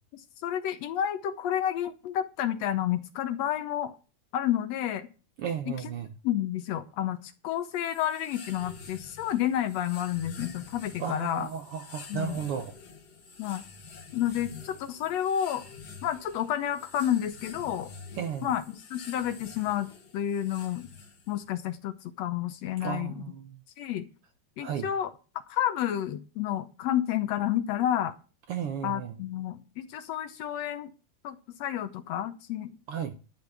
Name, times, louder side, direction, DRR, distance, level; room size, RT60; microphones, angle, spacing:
voice 1, 0.1-3.9 4.3-5.1 6.2-11.5 12.1-12.4 13.4-13.6 14.1-15.7 16.0-17.9 18.4-20.9 21.3-23.1 23.8-24.1 24.6-25.1 25.5-28.2 28.8-30.9 31.2-32.7, left 11 dB, 70° left, 1.7 m, -30 dB
voice 2, 5.4-6.1 11.0-12.8 18.1-18.5 22.8-23.6 24.6-24.9 28.5-29.2 32.9-33.1, right 8 dB, 70° right, 1.4 m, -34 dB
sound 1, 7.6-21.5, left 4 dB, 40° left, 1.7 m, -48 dB
12.0 x 5.4 x 8.0 m
omnidirectional pair, 3.4 m